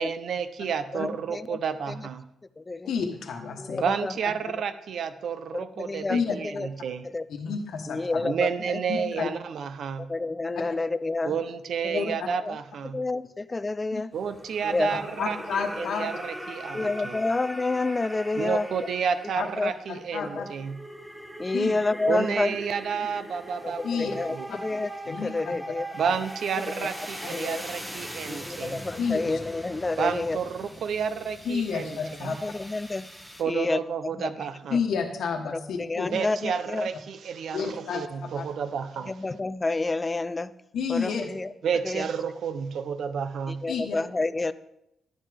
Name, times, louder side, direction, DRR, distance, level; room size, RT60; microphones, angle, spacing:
voice 1, 0.0-2.2 3.8-7.1 8.2-10.1 11.2-13.0 14.1-17.2 18.4-20.8 22.1-24.5 25.9-28.8 30.0-32.3 33.4-34.8 36.1-39.1 41.6-43.6, right 7 dB, 70° right, 11 dB, 0.8 m, -31 dB
voice 2, 0.9-1.6 1.9-2.1 2.6-2.9 3.6-4.2 5.5-6.2 6.4-6.7 7.0-7.2 7.9-9.1 10.0-11.4 11.8-12.6 12.9-14.1 14.6-15.0 15.8-15.9 16.7-18.7 19.6-19.7 20.1-20.5 21.4-22.6 23.0-23.1 23.6-25.9 26.8-26.9 27.3-27.6 28.3-30.4 31.8-32.0 32.2-33.1 33.5-33.8 34.1-34.3 34.7-34.8 35.5-36.9 39.1-40.5 40.9-41.5 41.8-42.1 43.5-44.5, left 3 dB, 20° left, 15 dB, 0.4 m, -29 dB
voice 3, 2.9-3.8 6.1-6.3 7.3-8.2 8.9-9.3 11.9-12.0 13.9-14.0 15.2-16.1 16.8-16.9 19.3-19.4 19.9-20.5 21.5-21.7 23.8-24.2 24.5-24.6 25.1-25.5 27.2-27.4 29.0-29.4 31.4-32.4 34.7-36.1 37.5-38.5 40.7-41.3 43.7-44.0, left 6 dB, 75° left, 2 dB, 1.2 m, -30 dB
sound 1, 14.1-33.4, right 1 dB, 5° right, 1.6 m, -41 dB
11.0 x 10.5 x 3.4 m, 0.83 s
cardioid pair, 115°, 0 cm